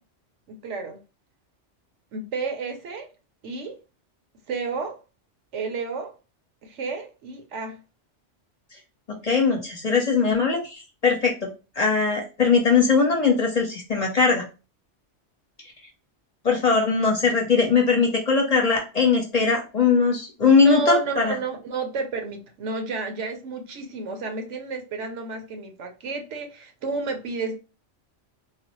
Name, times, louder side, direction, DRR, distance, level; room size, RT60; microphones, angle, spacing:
voice 1, 0.5-1.0 2.1-3.1 3.4-3.8 4.5-5.0 5.5-6.1 6.6-7.8 20.5-27.6, right 3 dB, 75° right, 1.1 m, -31 dB
voice 2, 9.1-11.5 11.8-14.4 16.4-21.4, left 4 dB, 35° left, 0.8 m, -20 dB
4.0 x 2.0 x 2.9 m
omnidirectional pair, 1.3 m